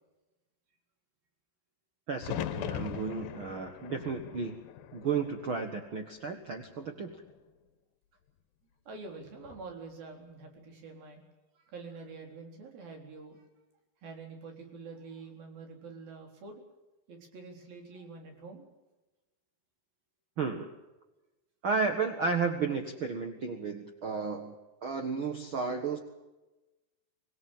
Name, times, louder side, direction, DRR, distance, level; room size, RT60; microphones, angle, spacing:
voice 1, 2.1-4.5 4.9-7.1 20.4-20.7 21.6-26.0, right 5 dB, 45° right, 5 dB, 1.8 m, -33 dB
sound 1, 2.2-6.3 6.6-7.4 9.3-9.7, left 11 dB, 85° left, 2.7 m, -41 dB
voice 2, 8.9-11.2 11.6-13.4 14.0-16.6 17.1-18.7, right 4 dB, 80° right, 3 dB, 5.9 m, -46 dB
26.0 x 18.0 x 7.4 m, 1.1 s
omnidirectional pair, 4.1 m